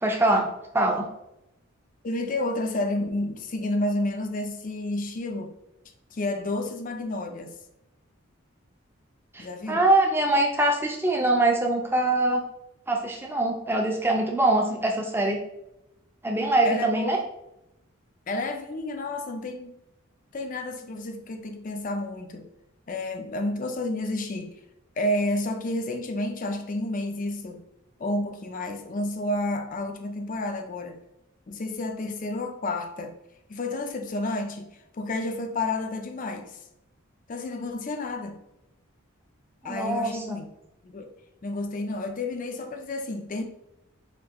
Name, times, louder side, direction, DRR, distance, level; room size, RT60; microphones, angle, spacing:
voice 1, 0.0-1.1 9.3-12.4 12.9-15.4 16.2-17.2 39.6-40.4, right 2 dB, 10° right, 1 dB, 0.5 m, -23 dB
voice 2, 2.0-5.5 6.1-7.5 9.4-9.9 16.6-17.3 18.3-19.7 20.3-22.5 22.9-24.5 25.0-27.6 28.0-31.0 31.5-33.1 33.5-34.7 35.0-36.6 37.3-38.4 39.6-40.5 40.8-41.1 41.4-43.4, left 2 dB, 40° left, 6 dB, 0.4 m, -30 dB
4.4 x 2.7 x 3.6 m, 0.89 s
head